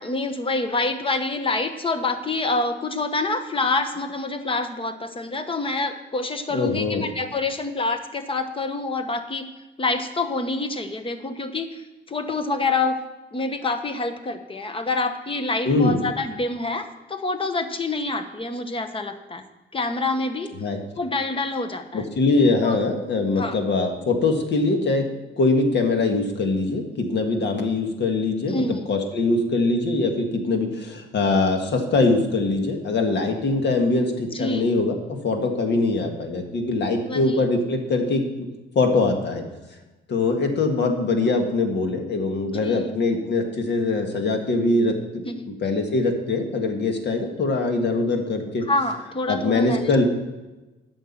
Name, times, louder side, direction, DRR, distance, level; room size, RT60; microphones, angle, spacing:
voice 1, 0.0-9.5 9.8-13.0 13.3-19.4 19.7-20.5 21.0-22.0 22.6-22.8 23.4-23.6 28.5-28.9 34.3-34.7 37.0-37.4 42.6-43.0 45.2-45.5 48.7-49.9, left 3 dB, 25° left, 8 dB, 1.1 m, -27 dB
voice 2, 6.5-7.1 15.6-16.0 20.6-20.8 21.9-25.0 25.4-34.9 35.2-38.5 38.7-39.4 40.1-45.2 45.6-48.6 49.3-50.0, left 3 dB, 60° left, 4 dB, 1.7 m, -22 dB
9.2 x 6.3 x 7.2 m, 1.1 s
cardioid pair, 90°, 20 cm